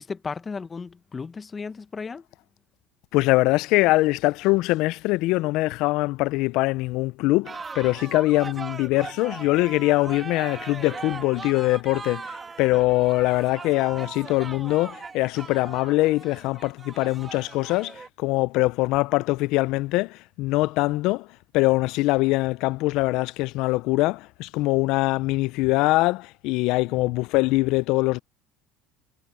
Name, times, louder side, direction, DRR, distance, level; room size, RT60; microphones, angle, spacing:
voice 1, 0.0-2.3, left 5 dB, 20° left, 1.2 m, -35 dB
voice 2, 3.1-21.3 21.5-28.2, left 20 dB, 65° left, 0.4 m, -23 dB
sound 1, 7.5-18.1, right 4 dB, 20° right, 2.0 m, -39 dB
cardioid pair, 125°, 0 cm